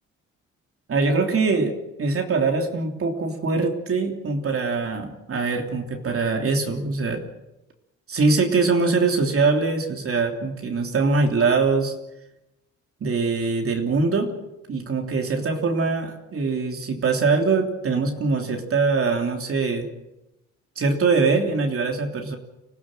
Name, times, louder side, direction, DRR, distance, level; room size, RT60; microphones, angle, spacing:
voice 1, 0.9-1.7 2.0-7.2 8.1-11.9 13.0-14.3 14.7-19.9 20.8-22.4, right 4 dB, 45° right, 3 dB, 3.2 m, -23 dB
25.5 x 16.5 x 7.7 m, 0.94 s
cardioid pair, 90°, 30 cm